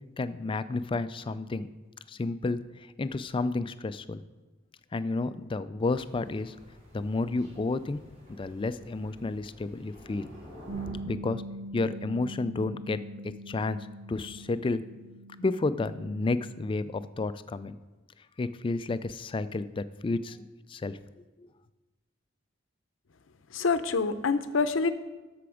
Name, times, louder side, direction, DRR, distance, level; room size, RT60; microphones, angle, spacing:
voice 1, 0.2-1.7 2.1-2.6 3.0-4.2 4.9-6.6 6.9-8.0 8.4-10.3 11.0-11.4 11.7-14.8 15.4-17.8 18.4-20.4 20.7-21.0 21.4-21.5, left 3 dB, 25° left, 13 dB, 0.3 m, -31 dB
Thunder, 5.8-10.9, left 1 dB, 40° right, 3.3 m, -50 dB
Bass guitar, 10.7-16.9, right 2 dB, 85° right, 1.7 m, -43 dB
voice 2, 23.5-24.9, left 4 dB, 75° left, 11 dB, 0.6 m, -26 dB
13.0 x 6.0 x 5.0 m, 1.2 s
head